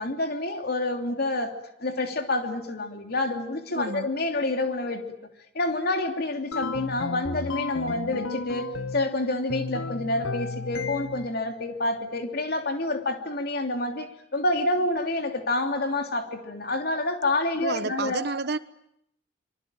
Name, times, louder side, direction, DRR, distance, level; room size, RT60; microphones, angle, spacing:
voice 1, 0.0-1.5 1.8-5.0 5.5-18.3, left 2 dB, 50° left, 3.0 m, -28 dB
voice 2, 3.7-4.1 17.6-18.6, right 3 dB, 55° right, 1.3 m, -30 dB
sound 1, 6.5-9.1 9.5-11.4, left 4 dB, 85° left, 1.0 m, -33 dB
27.0 x 24.0 x 9.0 m
head